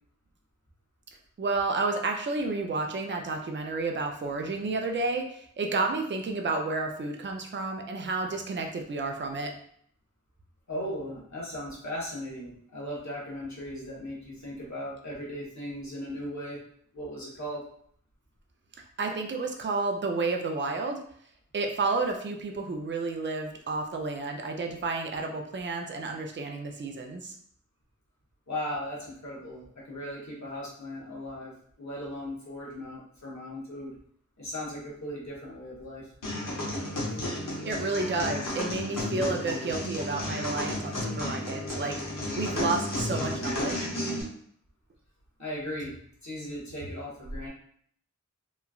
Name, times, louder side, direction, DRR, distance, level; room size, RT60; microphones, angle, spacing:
voice 1, 1.4-9.5 19.0-21.0 21.5-27.4 37.6-43.9, right 3 dB, 35° right, 2 dB, 0.4 m, -31 dB
voice 2, 10.7-16.6 16.9-17.6 28.5-33.9 34.4-36.1 45.4-45.9 46.2-47.5, equal, 60° left, -6 dB, 1.0 m, -37 dB
sound 1, 36.2-44.2, left 1 dB, 80° left, 0.8 m, -32 dB
2.9 x 2.3 x 2.3 m, 0.62 s
wide cardioid pair, 55°, 32 cm